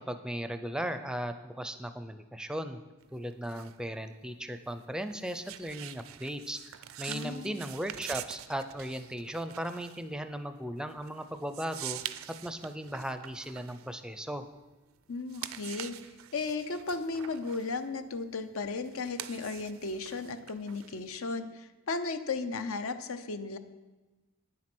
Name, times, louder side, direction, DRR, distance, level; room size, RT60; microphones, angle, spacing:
voice 1, 0.1-2.8 3.1-12.0 12.4-14.4, equal, 5° right, 9 dB, 0.5 m, -37 dB
sound 1, 3.0-14.7 15.1-21.2, right 12 dB, 70° right, 0.4 m, -45 dB
voice 2, 7.1-7.6 15.1-16.0 16.3-23.6, left 3 dB, 75° left, 9 dB, 0.7 m, -35 dB
9.5 x 7.5 x 6.1 m, 1.2 s
head